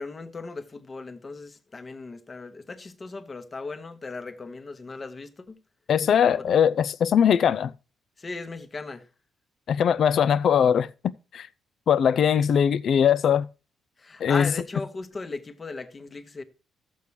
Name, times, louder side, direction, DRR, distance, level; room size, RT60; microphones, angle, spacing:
voice 1, 0.0-5.6 6.4-6.5 8.2-9.1 14.0-16.4, left 3 dB, 30° left, 1.0 m, -37 dB
voice 2, 5.9-7.7 9.7-10.9 11.3-11.5 11.9-13.5 14.2-14.5, left 8 dB, 60° left, 0.4 m, -20 dB
14.0 x 7.0 x 3.2 m
cardioid pair, 90°, 0 cm